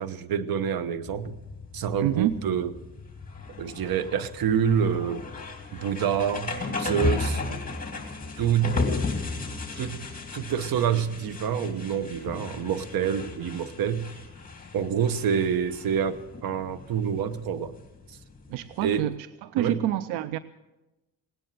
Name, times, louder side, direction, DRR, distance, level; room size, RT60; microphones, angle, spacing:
voice 1, 0.0-1.4 1.7-2.7 3.6-5.2 5.7-7.4 8.4-8.8 9.8-10.0 10.3-14.1 14.7-17.7 18.1-18.2 18.8-19.1 19.6-19.8, right 8 dB, 60° right, 1.1 m, -27 dB
sound 1, 1.1-19.0, left 3 dB, 20° left, 2.8 m, -35 dB
voice 2, 2.0-2.4 18.5-19.2 19.4-20.4, right 12 dB, 85° right, 0.6 m, -27 dB
18.0 x 10.0 x 7.7 m
cardioid pair, 80°, 40 cm